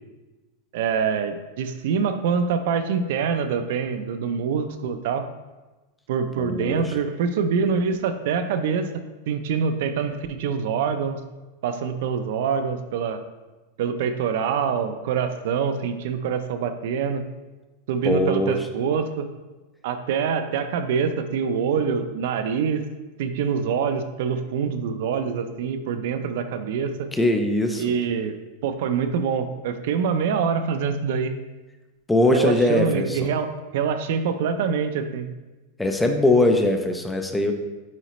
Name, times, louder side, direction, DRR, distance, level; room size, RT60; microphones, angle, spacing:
voice 1, 0.7-5.3 6.1-11.2 11.6-13.2 13.8-17.2 17.9-19.3 19.8-22.8 23.2-27.1 27.8-28.4 28.6-31.3 32.3-33.5 33.7-35.3, right 6 dB, 55° right, 9 dB, 0.5 m, -25 dB
voice 2, 6.4-6.9 18.0-18.7 27.1-27.8 32.1-33.3 35.8-37.5, left 2 dB, 5° left, 5 dB, 0.3 m, -21 dB
8.3 x 4.0 x 3.0 m, 1.2 s
supercardioid pair, 175°, 0 cm